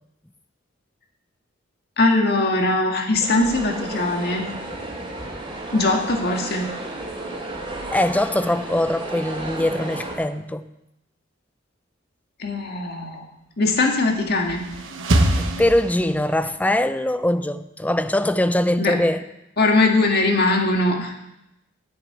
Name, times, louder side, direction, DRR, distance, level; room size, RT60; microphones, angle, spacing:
voice 1, 2.0-4.4 5.7-6.7 12.4-13.2 13.6-14.6 18.8-18.9 19.6-21.1, left 2 dB, 55° left, 1.8 m, -20 dB
sound 1, 3.2-10.2, right 2 dB, 25° right, 3.0 m, -33 dB
voice 2, 7.9-10.7 15.4-19.2, left 1 dB, 10° left, 0.5 m, -22 dB
sound 2, 14.1-16.5, right 1 dB, 80° right, 1.2 m, -24 dB
10.0 x 6.7 x 8.8 m
head